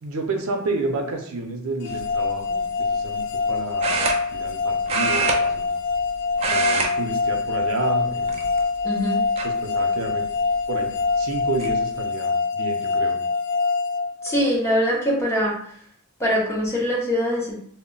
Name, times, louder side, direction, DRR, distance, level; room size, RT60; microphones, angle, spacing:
voice 1, 0.0-5.7 6.5-8.5 9.4-10.2 10.7-10.9 11.2-13.2, right 2 dB, 85° right, 3 dB, 0.5 m, -30 dB
sound 1, 1.8-14.8, left 4 dB, 55° left, 0.3 m, -25 dB
sound 2, 1.9-2.2 3.8-4.6 4.9-6.1 6.3-6.9 7.2-7.5 8.2-8.8 9.4-9.5 10.9-11.0 11.3-11.7, right 4 dB, 30° right, 0.3 m, -25 dB
voice 2, 8.8-9.2 14.2-15.8 16.2-17.6, equal, 15° left, -4 dB, 0.7 m, -23 dB
2.1 x 2.0 x 3.7 m, 0.62 s
head